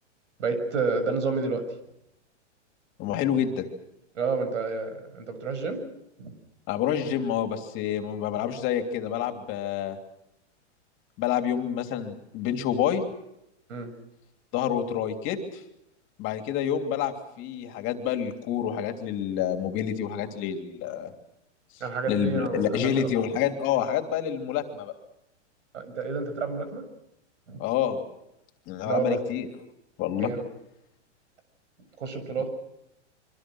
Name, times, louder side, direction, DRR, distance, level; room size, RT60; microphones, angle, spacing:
voice 1, 0.4-1.6 4.1-5.8 6.2-6.3 13.7-13.9 21.8-23.1 25.7-26.9 27.5-27.6 28.8-29.2 30.2-30.5 32.0-32.5, right 4 dB, 90° right, 9 dB, 7.4 m, -29 dB
voice 2, 3.0-3.7 6.7-10.0 11.2-13.0 14.5-15.4 16.2-21.1 22.1-24.9 27.6-28.0 28.7-29.5 30.0-30.3, left 9 dB, 35° left, 6 dB, 3.2 m, -28 dB
26.0 x 25.0 x 6.4 m, 0.81 s
hypercardioid pair, 145°, 36 cm